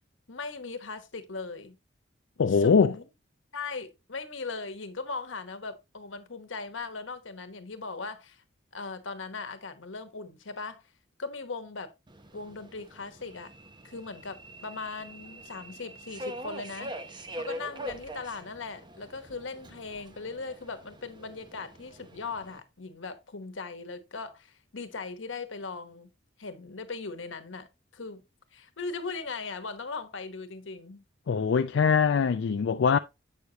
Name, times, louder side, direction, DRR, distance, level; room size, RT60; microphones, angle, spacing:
voice 1, 0.3-1.8 2.4-3.0 3.5-8.4 8.7-10.8 11.2-11.9 12.3-13.5 13.8-16.9 17.3-26.1 26.4-27.7 27.9-28.2 28.5-31.0, left 4 dB, 90° left, 1.1 m, -39 dB
voice 2, 2.4-2.9 31.3-33.0, left 6 dB, 70° left, 0.4 m, -22 dB
Subway metro underground, 12.1-22.6, equal, 25° right, 0.8 m, -44 dB
8.2 x 6.4 x 2.8 m
head